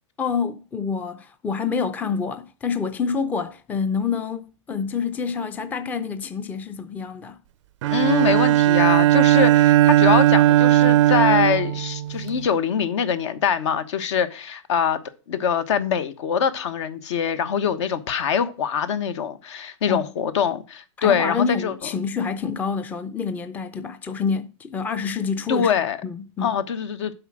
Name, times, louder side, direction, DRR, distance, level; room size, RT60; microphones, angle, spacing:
voice 1, 0.2-7.4 19.9-20.0 21.0-25.7 26.0-26.5, left 5 dB, 10° left, 0.5 m, -27 dB
Bowed string instrument, 7.8-12.4, right 13 dB, 70° right, 0.4 m, -17 dB
voice 2, 7.9-15.0 15.3-21.7 25.5-26.0 26.4-27.1, left 7 dB, 65° left, 1.2 m, -23 dB
8.0 x 5.0 x 6.2 m
hypercardioid pair, 140°, 16 cm